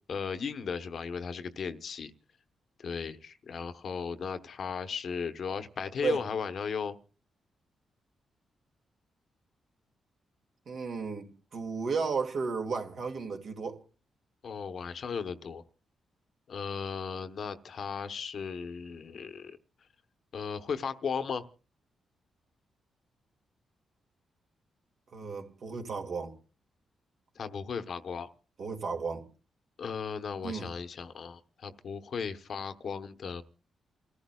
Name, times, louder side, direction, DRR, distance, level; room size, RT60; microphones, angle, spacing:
voice 1, 0.1-2.1 2.8-7.0 14.4-15.6 16.5-19.6 20.3-21.5 27.4-28.3 29.8-33.4, left 6 dB, 55° left, 1.0 m, -36 dB
voice 2, 10.7-13.8 25.1-26.3 28.6-29.2 30.4-30.7, right 5 dB, 55° right, 2.2 m, -34 dB
29.0 x 14.5 x 2.3 m
cardioid pair, 120°, 0 cm